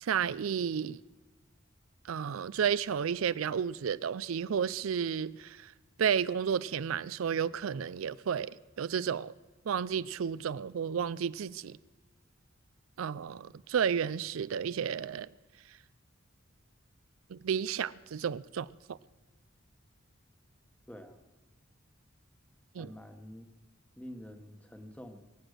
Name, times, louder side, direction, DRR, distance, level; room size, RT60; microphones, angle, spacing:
voice 1, 0.0-1.0 2.1-5.7 6.0-9.3 9.7-11.8 13.0-15.3 17.3-19.0 22.8-22.9, right 7 dB, 90° right, 0.4 m, -32 dB
voice 2, 20.9-21.2 22.8-23.5 24.0-25.2, equal, 5° left, 1.2 m, -47 dB
23.5 x 8.0 x 6.6 m
head